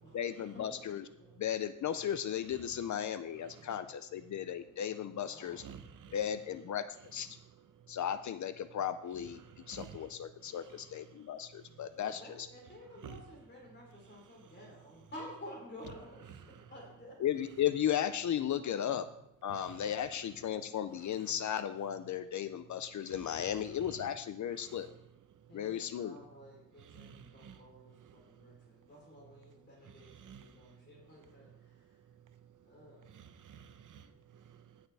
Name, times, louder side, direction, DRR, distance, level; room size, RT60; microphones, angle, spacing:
voice 1, 0.1-1.1 1.4-5.6 6.1-6.8 7.1-7.3 7.9-9.4 9.7-12.5 17.2-19.1 19.4-24.9 25.5-26.2, left 10 dB, 70° left, 0.5 m, -35 dB
voice 2, 3.5-4.7 5.3-5.6 6.1-6.2 11.7-17.1 18.7-19.1 25.5-31.5 32.6-33.1, left 1 dB, 35° left, 3.5 m, -52 dB
voice 3, 5.6-6.1 9.7-10.0 13.0-13.2 16.5-16.6 26.9-27.6 30.2-30.4 33.1-34.0, right 8 dB, 85° right, 0.9 m, -50 dB
18.0 x 6.5 x 3.4 m
wide cardioid pair, 180°, 31 cm